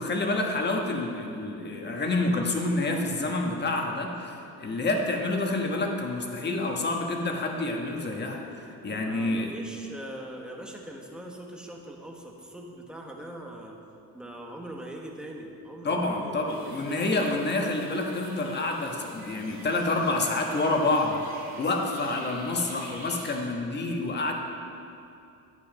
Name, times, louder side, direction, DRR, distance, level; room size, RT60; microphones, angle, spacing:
voice 1, 0.0-9.5 15.8-24.3, left 2 dB, 30° left, 1 dB, 1.3 m, -28 dB
voice 2, 9.0-13.8 14.1-17.0, right 1 dB, ahead, 0 dB, 1.1 m, -42 dB
sound 1, 16.5-23.3, right 1 dB, 25° right, 2.9 m, -47 dB
10.5 x 9.6 x 5.2 m, 2.7 s
cardioid pair, 145°, 36 cm